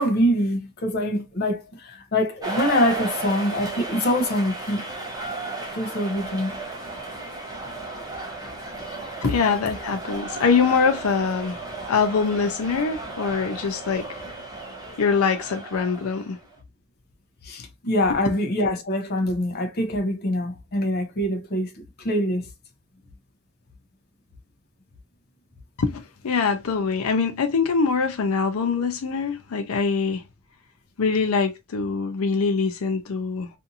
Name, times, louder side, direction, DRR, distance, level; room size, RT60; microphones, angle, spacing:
voice 1, 0.0-4.8 5.7-6.5 8.7-8.8 9.2-9.3 17.4-22.5, equal, 45° left, 0.6 m, -24 dB
sound 1, 2.4-16.6, right 2 dB, 20° right, 0.7 m, -34 dB
voice 2, 9.2-11.6 11.9-14.2 15.0-16.4 25.8-30.2 31.0-33.5, left 5 dB, 90° left, 0.5 m, -23 dB
2.5 x 2.5 x 2.6 m
head